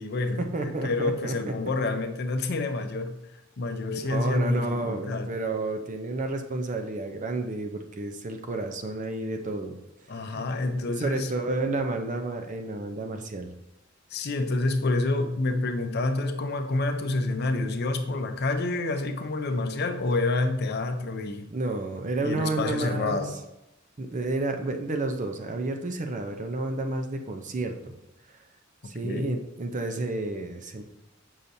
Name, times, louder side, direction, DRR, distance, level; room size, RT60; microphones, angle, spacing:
voice 1, 0.0-3.2 3.6-5.3 10.1-11.3 14.1-21.5 22.2-23.3 28.8-29.3, left 2 dB, 55° left, 7 dB, 0.5 m, -28 dB
voice 2, 0.5-1.5 3.9-9.8 10.2-10.4 10.8-13.5 21.5-23.3 24.0-28.0 28.3-28.4 28.8-30.8, right 2 dB, 40° right, 6 dB, 0.6 m, -31 dB
6.7 x 5.6 x 2.7 m, 0.88 s
head